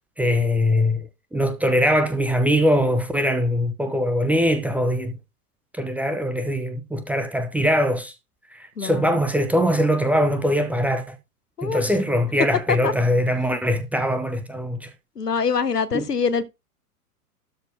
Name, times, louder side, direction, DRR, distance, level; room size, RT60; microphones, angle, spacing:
voice 1, 0.2-5.2 5.7-8.1 8.5-11.2 11.6-14.9 15.9-16.0, equal, 5° right, 0.6 m, -22 dB
voice 2, 8.8-9.2 11.6-11.8 12.7-12.9 15.2-16.4, left 5 dB, 85° left, 1.1 m, -24 dB
12.5 x 4.2 x 4.6 m
figure-of-eight pair, 100°, 46 cm